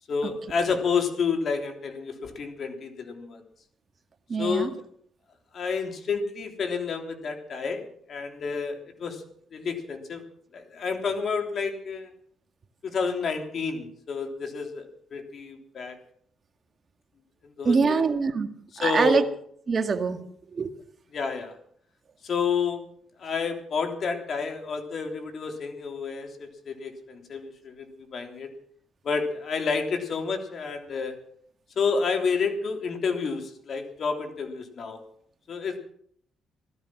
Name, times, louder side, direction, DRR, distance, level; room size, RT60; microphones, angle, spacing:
voice 1, 0.1-3.4 4.4-4.7 5.5-9.2 9.5-10.2 10.5-12.1 12.8-14.9 15.1-16.0 17.6-18.0 18.8-19.2 21.1-21.5 22.2-22.8 23.2-27.9 28.1-28.5 29.0-31.2 31.7-35.0 35.5-35.8, left 5 dB, 55° left, 4 dB, 3.3 m, -29 dB
voice 2, 4.3-4.7 17.7-18.5 18.8-19.2 19.7-20.2 20.5-20.7, right 5 dB, 40° right, 6 dB, 1.8 m, -24 dB
16.5 x 13.0 x 6.1 m, 0.64 s
cardioid pair, 90°, 0 cm